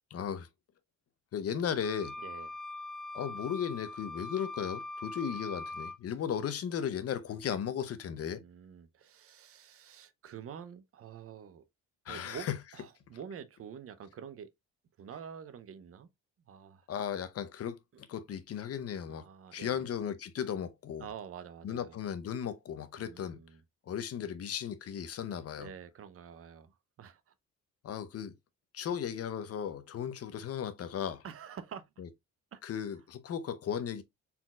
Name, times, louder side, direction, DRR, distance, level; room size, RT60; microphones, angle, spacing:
voice 1, 0.1-0.5 1.3-2.1 3.1-8.4 12.1-12.5 16.9-19.3 19.5-21.1 21.6-23.4 23.9-25.7 27.8-28.3 28.7-31.2 32.0-32.1 32.6-34.0, left 8 dB, 50° left, 0.7 m, -36 dB
sound 1, 1.8-6.0, left 2 dB, ahead, 0.4 m, -42 dB
voice 2, 2.2-2.5 8.3-11.7 12.1-12.5 12.7-14.5 15.0-16.1 16.5-16.9 17.9-18.0 18.3-18.4 19.1-19.9 21.0-22.0 23.0-23.6 25.6-27.3 31.2-32.0 32.5-32.6, right 8 dB, 45° right, 0.7 m, -47 dB
4.2 x 3.9 x 2.4 m
cardioid pair, 115°, 32 cm